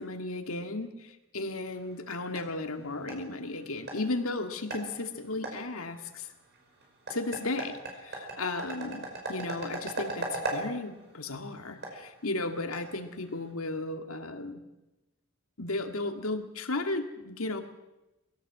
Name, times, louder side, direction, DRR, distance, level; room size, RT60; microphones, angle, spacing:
voice 1, 0.0-6.3 7.1-14.6 15.6-17.6, left 2 dB, 85° left, 6 dB, 2.1 m, -35 dB
sound 1, 1.7-13.5, right 2 dB, 50° right, 5.4 m, -40 dB
21.0 x 16.5 x 7.5 m, 1.0 s
head